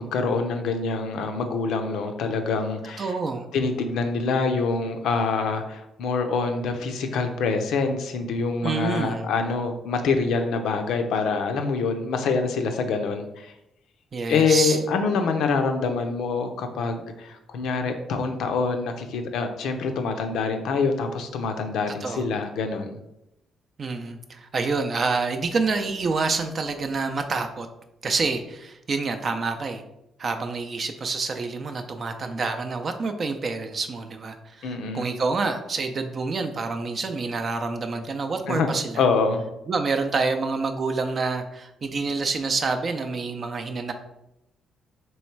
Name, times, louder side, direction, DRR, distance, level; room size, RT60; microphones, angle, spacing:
voice 1, 0.0-3.1 3.5-13.5 14.3-23.0 34.6-35.1 38.5-38.7 39.0-39.4, left 4 dB, 80° left, 6 dB, 0.5 m, -25 dB
voice 2, 3.0-3.5 8.6-9.3 14.1-14.8 22.0-22.3 23.8-27.7 28.0-29.8 30.2-39.0 39.7-43.9, right 4 dB, 45° right, 6 dB, 0.4 m, -27 dB
3.1 x 3.1 x 4.5 m, 0.88 s
cardioid pair, 90°, 0 cm